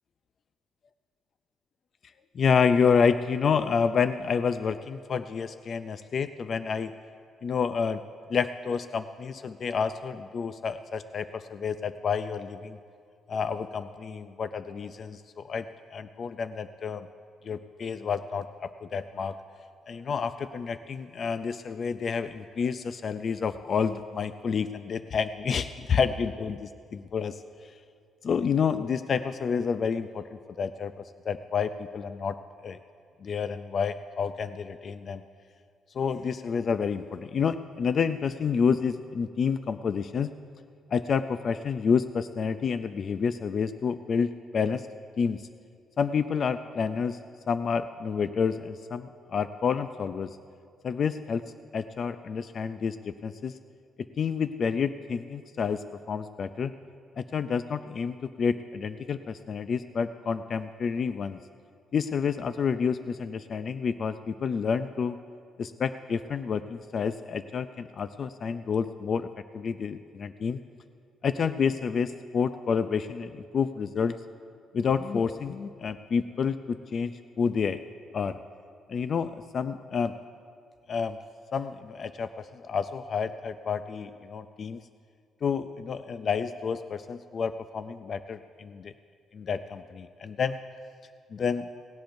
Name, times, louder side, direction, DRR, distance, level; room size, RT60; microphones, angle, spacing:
voice 1, 2.3-6.9 7.4-8.0 8.3-12.8 13.3-17.1 17.4-19.4 19.9-27.7 28.2-32.4 32.6-32.8 33.2-35.2 35.9-40.3 40.9-44.9 45.2-45.5 46.0-47.2 47.5-50.4 50.8-51.4 51.7-53.6 54.0-56.7 57.2-61.4 61.9-65.2 65.6-69.3 69.5-70.6 71.2-74.2 74.7-77.8 78.1-78.4 78.9-80.1 80.9-81.2 81.5-84.8 85.4-88.9 89.3-90.6 91.3-91.7, left 6 dB, 50° left, 11 dB, 0.4 m, -29 dB
18.0 x 17.0 x 2.6 m, 2.2 s
cardioid pair, 90°, 0 cm